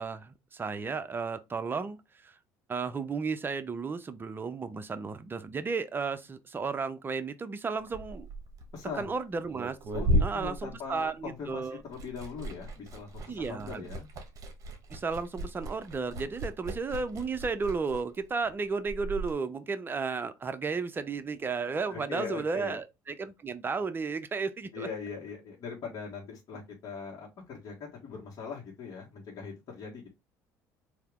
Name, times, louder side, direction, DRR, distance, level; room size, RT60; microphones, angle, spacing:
voice 1, 0.0-2.0 2.2-2.4 2.7-8.3 8.9-9.8 10.2-11.8 13.3-13.9 14.9-24.9, right 4 dB, 25° right, 0.6 m, -33 dB
Liquid, 7.8-11.5 11.8-19.3, equal, 45° right, 1.2 m, -35 dB
voice 2, 8.7-9.1 9.9-14.1 21.9-22.8 24.7-30.1, left 5 dB, 50° left, 1.5 m, -41 dB
3.4 x 2.8 x 3.5 m
supercardioid pair, 80°, 8 cm